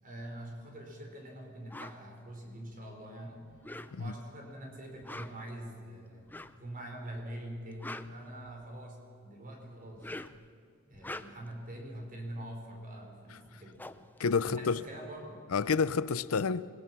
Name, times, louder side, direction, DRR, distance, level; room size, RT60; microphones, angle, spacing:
voice 1, 0.0-3.4 4.0-6.3 6.6-10.1 10.9-13.8 14.4-15.4, right 1 dB, 40° right, 4.7 m, -44 dB
sound 1, 1.7-2.0 3.5-4.2 4.9-5.5 6.3-6.6 7.6-8.8 9.8-10.5 10.9-11.6 13.1-13.2 13.4-15.1, left 2 dB, 10° left, 0.5 m, -45 dB
voice 2, 14.2-14.8 15.5-16.7, left 5 dB, 75° left, 0.6 m, -29 dB
27.0 x 20.0 x 6.0 m
head